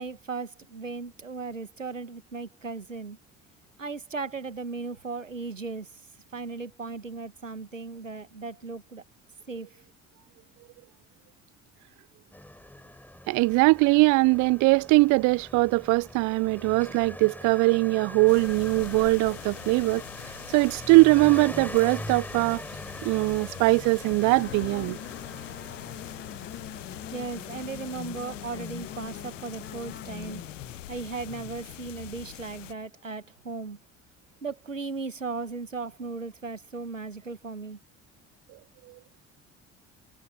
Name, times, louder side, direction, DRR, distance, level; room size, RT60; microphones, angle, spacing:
voice 1, 0.0-3.2 3.8-6.0 6.3-9.0 9.5-9.8 27.1-30.4 30.9-33.8 34.4-37.8, right 4 dB, 90° right, 1.7 m, -36 dB
Motorcycle, 12.3-31.1, left 1 dB, 5° left, 5.2 m, -43 dB
voice 2, 13.3-20.0 20.5-22.6 23.0-25.0, right 25 dB, 50° right, 0.6 m, -21 dB
Windy day, 18.3-32.7, left 14 dB, 80° left, 0.6 m, -43 dB
sound 1, 24.2-32.6 32.9-33.0 34.1-34.2, left 8 dB, 30° left, 1.1 m, -43 dB
figure-of-eight pair, 55°, 37 cm